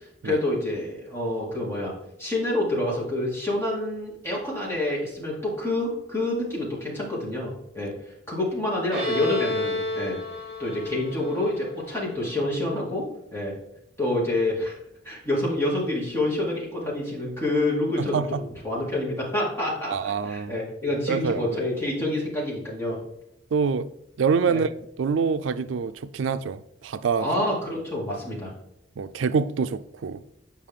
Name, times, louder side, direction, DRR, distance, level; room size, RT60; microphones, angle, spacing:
voice 1, 0.2-1.9 2.2-7.9 8.3-10.2 10.6-13.5 14.0-14.7 15.0-18.2 18.6-23.0 24.5-24.6 27.2-28.5, left 1 dB, 10° left, 2.5 m, -27 dB
Bowed string instrument, 8.9-12.5, left 1 dB, 5° right, 3.1 m, -31 dB
voice 2, 18.0-18.4 19.9-20.5 21.1-21.5 23.5-23.9 24.2-24.7 25.0-27.3 29.0-30.2, right 5 dB, 80° right, 0.4 m, -25 dB
8.5 x 5.6 x 3.6 m
head